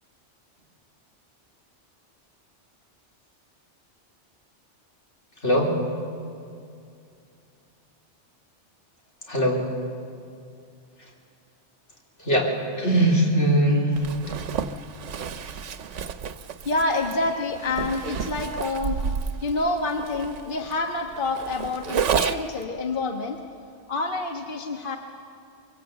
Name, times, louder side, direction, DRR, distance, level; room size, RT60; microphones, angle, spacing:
voice 1, 9.3-9.6 12.2-12.5 12.8-14.0, right 1 dB, 80° left, -1 dB, 4.1 m, -20 dB
Zipper (clothing), 13.9-22.6, right 6 dB, 90° right, 1.2 m, -31 dB
voice 2, 16.6-19.0 19.4-23.5 23.9-25.0, left 2 dB, 45° left, 3 dB, 1.4 m, -27 dB
24.5 x 23.0 x 8.0 m, 2.4 s
omnidirectional pair, 1.2 m